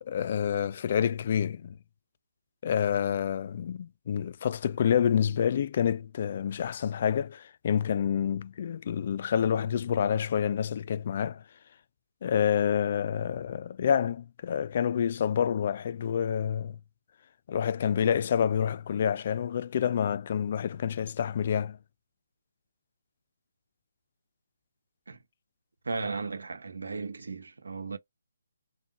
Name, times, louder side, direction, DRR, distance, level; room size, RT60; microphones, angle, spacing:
voice 1, 0.0-1.8 2.6-11.4 12.2-16.8 17.5-21.8, left 8 dB, 45° left, 0.3 m, -28 dB
voice 2, 25.8-28.0, right 4 dB, 75° right, 1.0 m, -35 dB
3.7 x 2.2 x 2.7 m
figure-of-eight pair, 150°, 0 cm